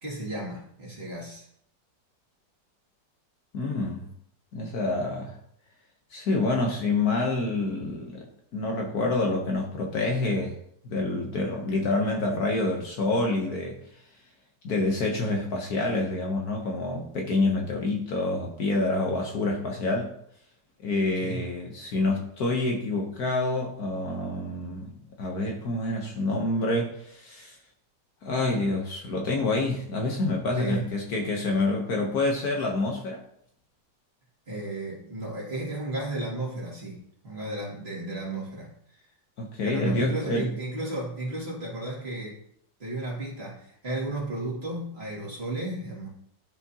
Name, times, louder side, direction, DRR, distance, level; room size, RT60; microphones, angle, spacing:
voice 1, 0.0-1.5 16.7-16.8 21.2-21.5 30.6-30.9 31.6-31.7 34.5-37.0 37.2-39.0 39.6-42.4 42.8-46.1, right 2 dB, 35° right, -5 dB, 2.4 m, -33 dB
voice 2, 3.5-4.1 4.5-5.3 6.1-8.3 8.5-10.5 10.8-13.8 14.6-20.1 20.8-24.9 25.2-27.6 28.2-33.2 39.4-40.5, left 2 dB, 60° left, 1 dB, 1.3 m, -27 dB
11.0 x 4.9 x 2.8 m, 0.67 s
omnidirectional pair, 2.0 m